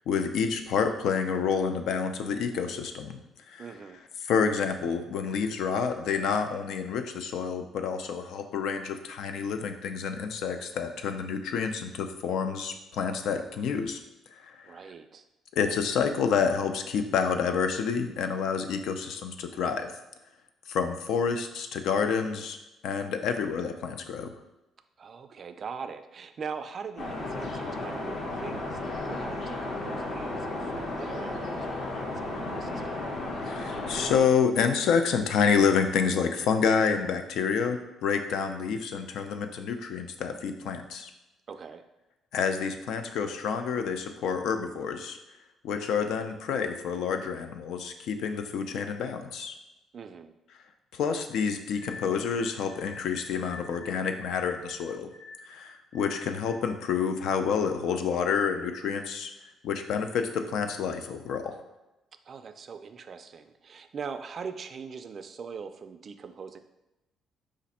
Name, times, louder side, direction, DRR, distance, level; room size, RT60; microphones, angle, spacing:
voice 1, 0.0-3.2 3.5-3.7 4.2-14.0 14.3-14.8 15.5-19.9 20.7-22.6 22.8-24.3 33.4-41.1 42.3-45.2 45.6-49.5 50.9-55.1 55.5-59.3 59.6-61.6, left 6 dB, 75° left, 7 dB, 0.4 m, -28 dB
voice 2, 3.6-4.0 14.6-15.2 25.0-28.8 29.1-33.0 41.5-41.8 49.9-50.3 62.3-66.6, right 6 dB, 40° right, 8 dB, 0.3 m, -41 dB
sound 1, 27.0-34.2, left 2 dB, 50° left, 0.8 m, -34 dB
sound 2, 51.7-56.6, left 4 dB, 20° left, 0.9 m, -47 dB
5.1 x 2.5 x 4.1 m, 0.98 s
cardioid pair, 140°, 0 cm